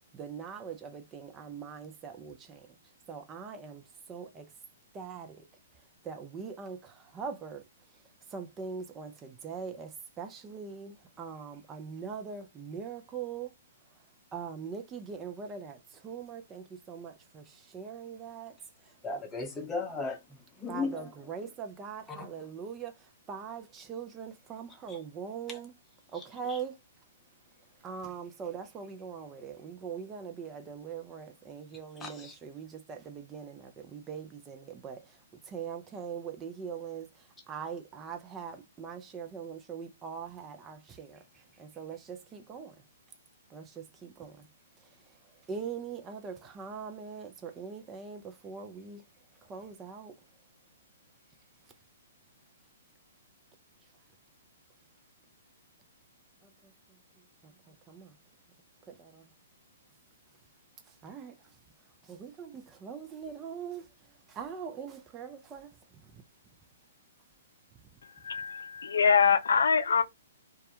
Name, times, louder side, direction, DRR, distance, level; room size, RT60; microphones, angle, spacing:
voice 1, 0.1-2.7 3.1-4.5 4.9-5.4 6.0-7.6 8.3-9.9 10.2-13.5 14.3-18.6 20.7-25.7 26.1-26.7 27.8-35.2 35.4-37.1 37.5-42.8 43.5-44.5 45.5-49.0 49.4-50.1 56.4-56.7 57.4-58.2 58.9-59.3 61.0-61.3 62.0-63.9 64.3-66.2, right 6 dB, 20° right, 0.4 m, -42 dB
voice 2, 19.0-20.2 20.6-21.1 22.1-22.3 24.9-25.0 25.5-25.6 26.1-26.2 26.5-26.6 32.0-32.4, left 3 dB, 15° left, 0.7 m, -36 dB
voice 3, 68.2-70.0, left 6 dB, 80° left, 0.3 m, -24 dB
2.3 x 2.1 x 2.8 m
hypercardioid pair, 130°, 0 cm